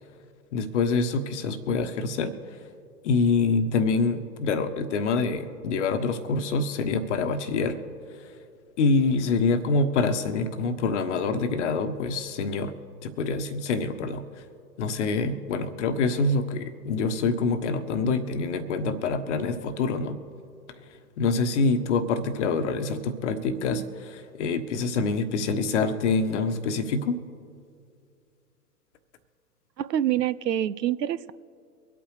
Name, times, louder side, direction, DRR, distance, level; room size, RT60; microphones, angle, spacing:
voice 1, 0.5-2.3 3.0-7.8 8.8-12.7 13.0-14.4 14.8-20.2 21.2-27.2, left 4 dB, 45° left, 9 dB, 1.2 m, -26 dB
voice 2, 29.8-31.3, right 11 dB, 80° right, 17 dB, 0.6 m, -26 dB
24.5 x 8.7 x 3.3 m, 2.4 s
figure-of-eight pair, 120°, 49 cm